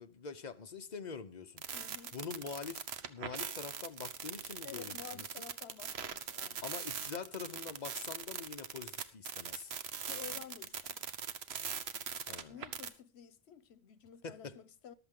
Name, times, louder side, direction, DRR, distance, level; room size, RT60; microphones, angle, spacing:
voice 1, 0.0-1.6 2.1-5.3 6.6-9.8 12.3-12.6 14.2-14.6, left 5 dB, 45° left, 0.9 m, -45 dB
sound 1, 1.6-12.9, right 7 dB, 80° right, 1.2 m, -41 dB
voice 2, 1.7-2.2 4.6-6.6 10.1-11.1 12.5-14.9, left 9 dB, 85° left, 1.1 m, -51 dB
14.0 x 12.0 x 3.7 m
omnidirectional pair, 1.1 m